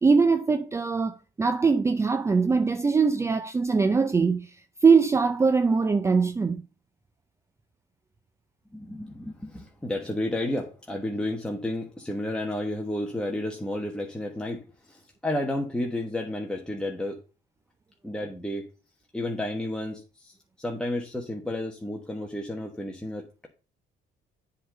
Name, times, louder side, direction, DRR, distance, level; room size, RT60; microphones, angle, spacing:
voice 1, 0.0-4.6 4.8-6.6, right 4 dB, 15° right, 0.4 m, -22 dB
voice 2, 8.7-17.2 18.0-18.7 19.1-23.5, left 1 dB, 5° left, 1.3 m, -32 dB
7.7 x 3.9 x 6.5 m
cardioid pair, 110°, 17 cm